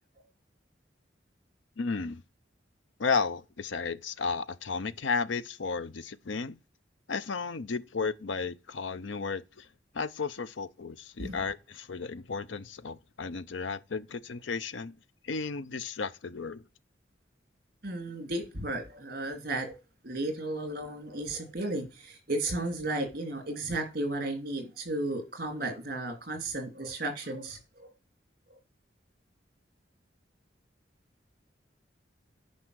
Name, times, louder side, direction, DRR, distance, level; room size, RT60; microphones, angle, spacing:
voice 1, 1.8-2.2 3.0-6.6 7.1-9.7 9.9-14.9 15.2-16.6, left 4 dB, 85° left, 0.6 m, -33 dB
voice 2, 17.8-19.8 20.0-27.9 28.5-28.6, right 2 dB, 50° right, 2.9 m, -34 dB
9.5 x 5.5 x 6.3 m
head